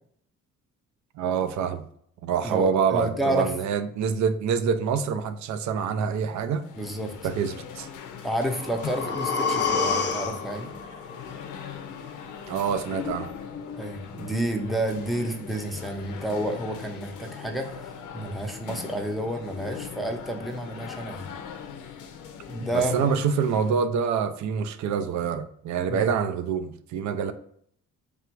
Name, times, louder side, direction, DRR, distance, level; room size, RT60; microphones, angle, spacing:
voice 1, 1.2-1.9 2.2-6.7 7.2-7.9 12.5-13.3 22.7-27.3, right 6 dB, 70° right, 11 dB, 0.5 m, -26 dB
voice 2, 2.4-3.6 6.8-7.1 8.2-10.8 13.8-21.3 22.5-23.0 25.9-26.0, right 1 dB, ahead, 2 dB, 0.6 m, -30 dB
sound 1, 6.6-23.9, left 7 dB, 85° left, 0.6 m, -40 dB
sound 2, 8.3-12.3 12.6-12.7, left 5 dB, 40° left, 0.6 m, -29 dB
3.4 x 2.4 x 4.5 m, 0.67 s
cardioid pair, 90°, 30 cm